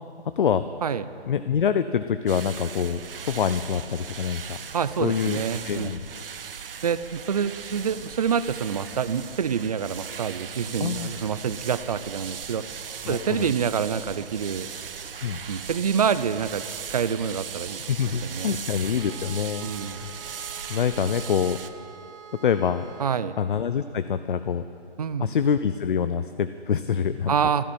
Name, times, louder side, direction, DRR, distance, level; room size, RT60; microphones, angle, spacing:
voice 1, 0.4-0.7 1.3-4.6 5.0-6.1 10.8-11.1 13.0-13.5 15.2-15.4 17.9-19.7 20.0-20.1 20.7-21.6 22.4-22.8 23.4-24.6 25.2-27.3, left 7 dB, 50° left, 11 dB, 0.6 m, -25 dB
sound 1, 2.3-21.7, right 7 dB, 55° right, 1.0 m, -38 dB
voice 2, 4.7-5.9 6.8-12.6 13.1-14.7 15.5-16.6 16.9-17.8 18.2-18.6 19.6-20.0 23.0-23.4 25.0-25.3 27.3-27.6, right 7 dB, 35° right, 14 dB, 0.5 m, -27 dB
sound 2, 18.9-23.1, right 6 dB, 10° right, 1.9 m, -46 dB
14.0 x 12.0 x 8.8 m, 2.6 s
hypercardioid pair, 155°, 33 cm